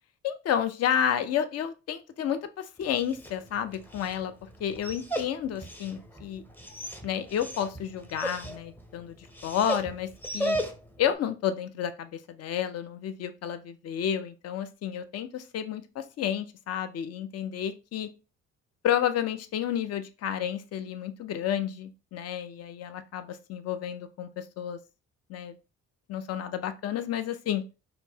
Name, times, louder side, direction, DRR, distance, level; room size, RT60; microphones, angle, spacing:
voice 1, 0.2-6.4 7.0-10.6 11.0-18.1 18.8-24.8 25.3-25.6 26.1-27.6, left 9 dB, 55° left, 11 dB, 0.5 m, -31 dB
Dog, 2.8-11.1, right 1 dB, 5° left, 0.6 m, -37 dB
4.3 x 2.1 x 2.7 m, 0.32 s
cardioid pair, 90°, 30 cm